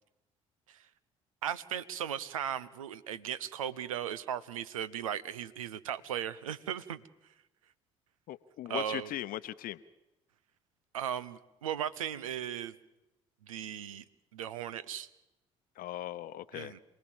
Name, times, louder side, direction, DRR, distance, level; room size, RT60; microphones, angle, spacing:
voice 1, 1.4-7.0 8.7-9.1 10.9-12.7 13.4-14.0 14.3-15.1 16.5-16.8, right 9 dB, 85° right, 17 dB, 0.8 m, -37 dB
voice 2, 8.3-9.8 15.8-16.7, left 13 dB, 60° left, 14 dB, 0.8 m, -39 dB
27.0 x 18.5 x 7.2 m, 0.97 s
hypercardioid pair, 50°, 17 cm